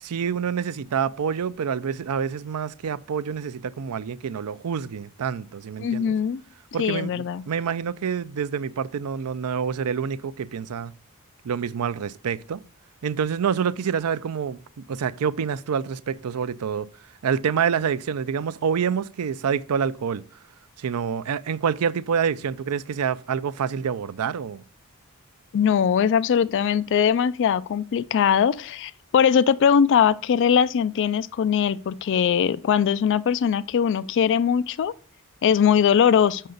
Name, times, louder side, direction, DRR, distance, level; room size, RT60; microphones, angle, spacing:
voice 1, 0.0-6.1 6.7-10.9 11.4-12.6 13.0-14.6 14.9-16.9 17.2-20.2 20.8-24.6, right 7 dB, 85° right, 0.4 m, -27 dB
voice 2, 5.8-6.4 6.8-7.4 25.5-34.9 35.4-36.4, left 7 dB, 55° left, 0.3 m, -21 dB
6.5 x 5.7 x 3.9 m
head